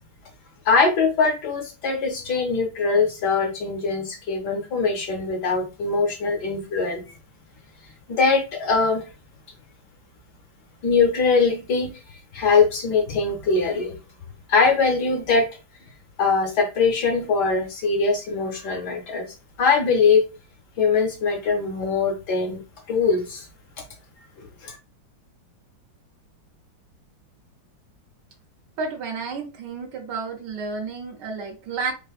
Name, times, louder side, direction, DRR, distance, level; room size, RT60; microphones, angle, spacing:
voice 1, 0.6-7.0 8.1-9.0 10.8-14.0 14.5-15.5 16.2-19.3 19.6-20.2 20.8-22.6 22.9-23.5 24.4-24.8, left 4 dB, 65° left, 2 dB, 1.2 m, -22 dB
voice 2, 28.8-31.9, right 4 dB, 70° right, 3 dB, 1.1 m, -31 dB
3.4 x 2.4 x 2.3 m, 0.31 s
omnidirectional pair, 2.1 m